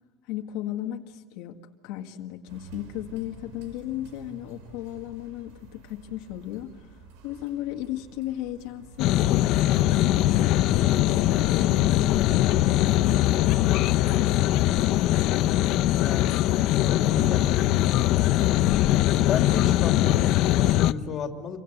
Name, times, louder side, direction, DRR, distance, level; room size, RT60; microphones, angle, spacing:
voice 1, 0.2-1.6 1.8-6.9 7.2-10.5 10.9-14.2, left 13 dB, 70° left, 2 dB, 1.8 m, -35 dB
sound 1, 2.5-12.8, right 4 dB, 90° right, 5.2 m, -50 dB
sound 2, 9.0-20.9, left 14 dB, 55° left, 0.8 m, -21 dB
voice 2, 16.0-16.4 16.9-18.4 19.3-21.6, left 6 dB, 35° left, 4 dB, 2.8 m, -33 dB
28.5 x 24.5 x 8.0 m, 1.2 s
cardioid pair, 160°, 0 cm